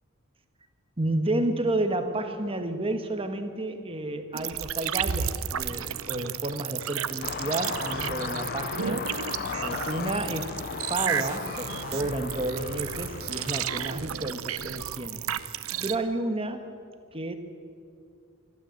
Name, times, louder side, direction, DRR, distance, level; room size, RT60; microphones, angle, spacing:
voice 1, 1.0-9.0 9.6-10.5 10.9-15.2 15.8-16.6 17.1-17.3, right 2 dB, 25° right, 7 dB, 1.4 m, -31 dB
sound 1, 4.3-16.0, right 9 dB, 75° right, 0.8 m, -33 dB
sound 2, 7.2-13.9, left 6 dB, 45° left, 0.5 m, -36 dB
27.5 x 12.5 x 7.9 m, 2.3 s
head